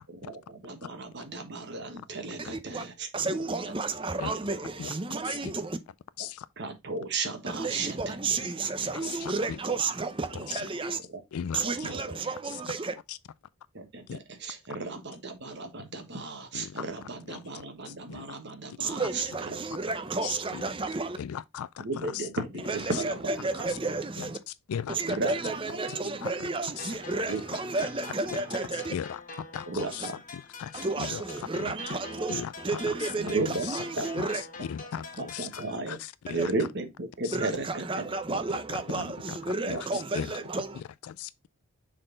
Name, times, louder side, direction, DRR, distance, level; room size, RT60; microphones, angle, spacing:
voice 1, 0.1-3.1 6.6-8.2 9.0-9.1 11.1-11.2 11.6-12.2 13.7-14.0 14.4-19.6 21.8-23.3 25.1-25.6 27.3-27.4 29.7-30.1 33.2-33.7 34.0-34.1 35.2-36.0 36.3-38.4 39.7-40.0, right 3 dB, 50° right, 1.3 m, -34 dB
voice 2, 2.4-2.9 3.1-5.8 7.5-11.0 11.5-12.9 18.8-21.2 22.6-24.4 24.9-28.9 29.9-30.1 30.7-34.4 36.3-36.5 37.3-40.8, right 3 dB, 25° right, 0.6 m, -32 dB
voice 3, 8.9-9.6 10.3-10.6 11.3-11.9 13.1-13.2 14.1-14.2 16.5-16.8 17.3-17.4 17.9-18.3 20.2-20.6 21.2-22.4 24.2-24.3 24.7-25.2 26.2-26.3 26.8-26.9 28.7-31.2 31.6-32.0 32.3-33.1 33.5-33.8 34.2-35.6 35.9-36.5 37.2-37.4 38.9-39.4 39.7-40.3 40.7-41.5, left 8 dB, 80° left, 0.3 m, -38 dB
sound 1, 26.8-35.8, left 4 dB, 35° left, 1.2 m, -45 dB
6.4 x 3.9 x 3.8 m
head